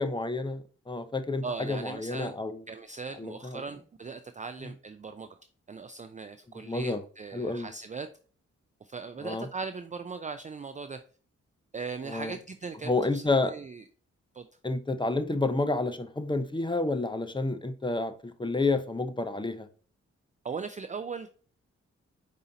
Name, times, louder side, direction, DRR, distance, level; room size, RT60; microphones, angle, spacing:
voice 1, 0.0-2.6 3.2-3.6 6.7-7.0 7.3-7.7 9.2-9.5 12.1-12.4 12.8-13.5 14.6-19.7, left 3 dB, 15° left, 9 dB, 0.7 m, -29 dB
voice 2, 1.4-2.3 2.7-5.4 5.7-8.1 8.8-11.0 11.7-13.8 14.3-14.5 20.4-21.3, right 4 dB, 25° right, 10 dB, 0.4 m, -39 dB
4.8 x 2.8 x 2.7 m, 0.41 s
supercardioid pair, 45°, 30 cm